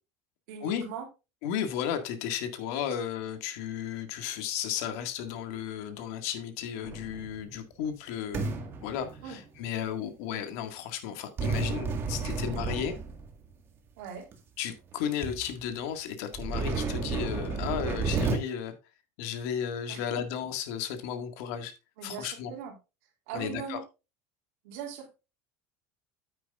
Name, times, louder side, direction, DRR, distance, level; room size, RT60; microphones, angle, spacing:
voice 1, 0.5-1.1 9.2-9.4 12.2-12.6 14.0-14.2 19.9-20.2 22.0-22.7 23.3-23.8 24.6-25.1, right 7 dB, 75° right, 3.0 m, -40 dB
voice 2, 1.4-8.5 8.8-12.9 14.6-18.7 19.2-21.7 22.0-22.5 23.3-23.8, left 9 dB, 75° left, 1.9 m, -34 dB
sound 1, 6.8-7.5 8.3-9.6 11.4-13.5 14.3-14.4 14.9-15.0 15.2-15.5 16.3-18.4, right 4 dB, 30° right, 1.7 m, -32 dB
9.6 x 9.2 x 2.4 m
cardioid pair, 150°, 8 cm